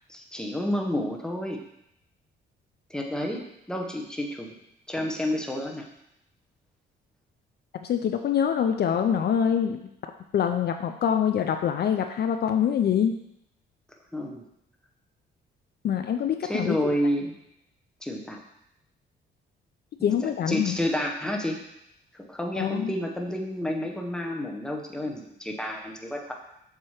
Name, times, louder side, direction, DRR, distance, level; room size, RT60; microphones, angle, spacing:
voice 1, 0.1-1.6 2.9-4.5 4.9-5.9 14.1-14.4 16.4-17.3 18.0-18.4 20.0-21.6 22.1-26.3, equal, 5° left, 1 dB, 1.0 m, -30 dB
voice 2, 7.8-9.8 10.3-13.1 15.8-16.9 20.0-20.8 22.6-22.9, left 8 dB, 55° left, 6 dB, 0.5 m, -25 dB
7.2 x 3.0 x 4.9 m, 0.79 s
cardioid pair, 90°, 20 cm